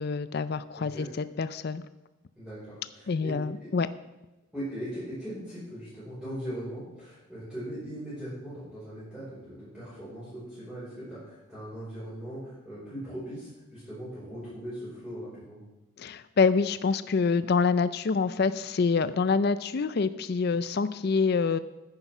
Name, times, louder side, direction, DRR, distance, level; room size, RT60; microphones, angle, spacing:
voice 1, 0.0-1.8 3.1-3.9 16.0-21.6, left 4 dB, 50° left, 14 dB, 0.4 m, -26 dB
voice 2, 0.7-1.1 2.4-3.7 4.5-15.6, equal, ahead, -13 dB, 5.3 m, -39 dB
9.8 x 9.8 x 6.0 m, 1.0 s
head